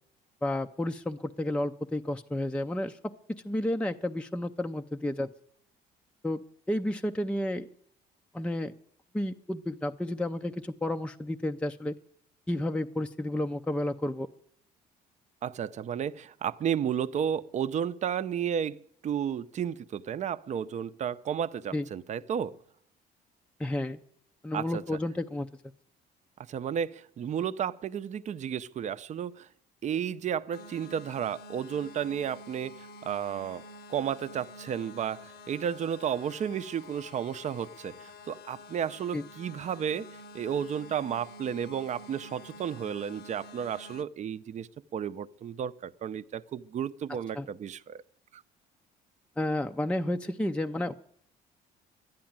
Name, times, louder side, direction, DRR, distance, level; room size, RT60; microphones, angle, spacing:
voice 1, 0.4-5.3 6.2-7.7 8.3-8.7 9.1-11.9 12.5-14.3 21.7-21.9 23.6-24.0 24.4-25.5 39.1-39.2 47.4-47.5 49.4-51.0, left 1 dB, 5° left, 0.5 m, -31 dB
voice 2, 15.4-22.6 24.5-25.0 26.5-29.5 29.8-33.6 33.9-48.0 48.3-48.4, right 8 dB, 45° right, 0.6 m, -33 dB
sound 1, 30.5-44.0, left 2 dB, 80° left, 1.0 m, -49 dB
12.0 x 10.5 x 8.8 m
cardioid pair, 110°, 17 cm